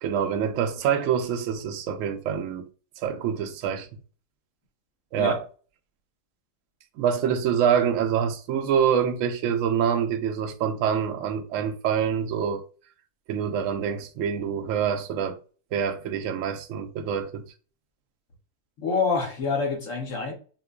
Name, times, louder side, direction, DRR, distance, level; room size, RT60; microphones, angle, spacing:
voice 1, 0.0-2.6 3.0-3.9 5.1-5.4 7.0-12.6 13.3-15.4 15.7-17.4, right 8 dB, 70° right, 0.7 m, -26 dB
voice 2, 18.8-20.3, left 4 dB, 55° left, 1.2 m, -26 dB
5.1 x 2.1 x 2.3 m
omnidirectional pair, 1.8 m